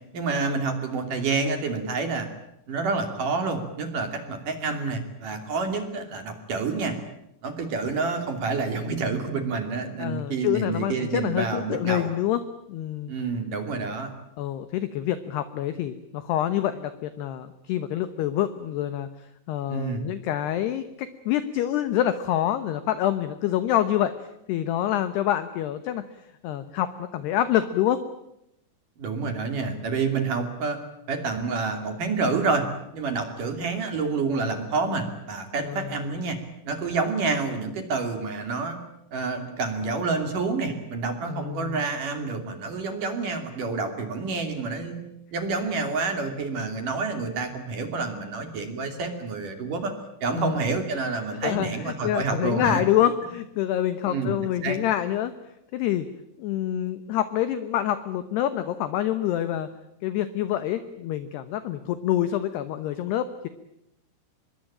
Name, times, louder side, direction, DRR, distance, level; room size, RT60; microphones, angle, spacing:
voice 1, 0.1-2.3 2.7-7.0 7.4-12.1 13.1-14.1 19.7-20.1 29.0-30.8 31.1-32.7 32.9-36.4 36.6-38.8 39.1-45.0 45.3-49.9 50.2-52.8 54.1-54.3 54.6-54.8, right 4 dB, 45° right, 7 dB, 3.8 m, -28 dB
voice 2, 10.0-12.4 12.7-13.1 14.4-26.0 26.4-28.0 35.6-36.0 41.2-41.8 50.4-50.6 51.4-55.3 55.7-56.1 56.4-59.7 60.0-63.5, left 11 dB, 70° left, 11 dB, 2.6 m, -26 dB
25.5 x 22.0 x 8.8 m, 0.81 s
omnidirectional pair, 6.0 m